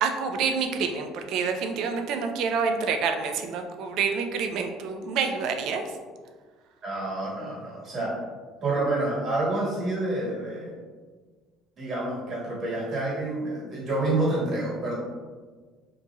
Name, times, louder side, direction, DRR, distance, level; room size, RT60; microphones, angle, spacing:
voice 1, 0.0-5.8, right 5 dB, 70° right, 5 dB, 0.3 m, -27 dB
voice 2, 6.8-8.2 8.6-10.8 11.8-14.9, right 2 dB, 45° right, -6 dB, 1.4 m, -28 dB
2.8 x 2.7 x 2.3 m, 1.4 s
supercardioid pair, 95°, 0 cm